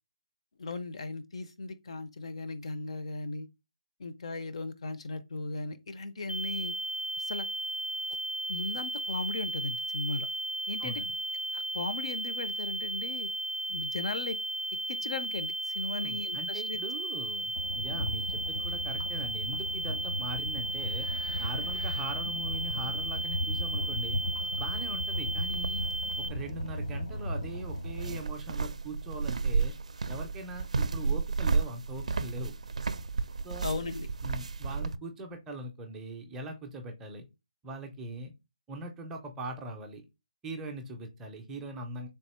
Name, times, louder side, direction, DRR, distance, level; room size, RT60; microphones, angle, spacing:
voice 1, 0.6-3.5 4.0-6.7 7.2-7.5 8.5-10.3 10.7-11.0 11.5-13.3 13.7-14.4 14.9-16.8 33.6-34.1, left 3 dB, 55° left, 0.5 m, -37 dB
sound 1, 6.3-26.3, right 1 dB, 90° left, 0.7 m, -35 dB
voice 2, 10.8-11.1 15.9-21.1 21.4-24.2 24.6-25.8 26.2-29.7 30.1-32.5 33.4-33.7 34.2-37.2 37.6-38.3 38.7-40.1 40.4-42.1, right 1 dB, 10° right, 0.5 m, -41 dB
sound 2, 17.6-28.2, equal, 70° left, 1.1 m, -36 dB
sound 3, 25.4-35.0, right 4 dB, 70° right, 0.4 m, -33 dB
3.5 x 2.7 x 4.2 m
hypercardioid pair, 160°, 4 cm